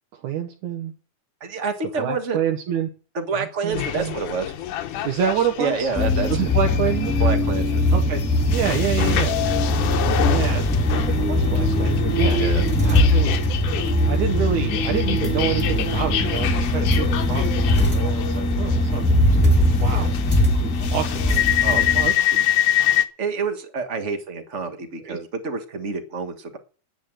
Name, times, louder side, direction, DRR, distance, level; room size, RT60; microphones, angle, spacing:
voice 1, 0.2-0.9 2.0-2.9 3.3-4.1 5.0-5.9 6.3-7.2 7.9-8.2 8.5-9.4 10.3-10.7 10.9-12.4 12.8-13.4 14.1-20.1 20.5-21.2 21.7-22.6 25.0-25.2, right 9 dB, 70° right, 2 dB, 2.5 m, -27 dB
voice 2, 1.4-2.4 3.1-4.5 5.6-6.5 7.2-7.8 12.3-12.7 19.9-20.2 21.6-21.8 23.2-26.6, right 4 dB, 35° right, 6 dB, 1.1 m, -28 dB
sound 1, 3.7-23.0, left 11 dB, 75° left, 2.4 m, -27 dB
sound 2, 6.0-22.1, left 1 dB, 5° left, 1.6 m, -21 dB
10.5 x 9.2 x 7.7 m, 0.40 s
omnidirectional pair, 3.7 m